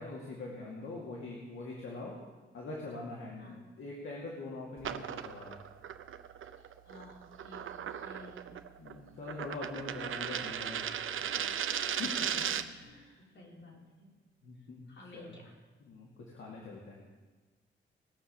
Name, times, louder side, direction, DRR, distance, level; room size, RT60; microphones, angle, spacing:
voice 1, 0.0-2.1 2.5-5.6 8.8-10.8 11.4-11.6 12.0-12.1 12.8-13.2 14.4-14.9 15.1-15.4 15.8-17.0, left 3 dB, 80° left, -4 dB, 2.3 m, -43 dB
sound 1, 4.8-12.8, right 9 dB, 80° right, 0.7 m, -37 dB
voice 2, 6.8-8.6 12.2-14.1 14.6-15.5, left 1 dB, 65° left, -3 dB, 4.5 m, -54 dB
19.5 x 6.6 x 7.3 m, 1.3 s
wide cardioid pair, 115°, 20 cm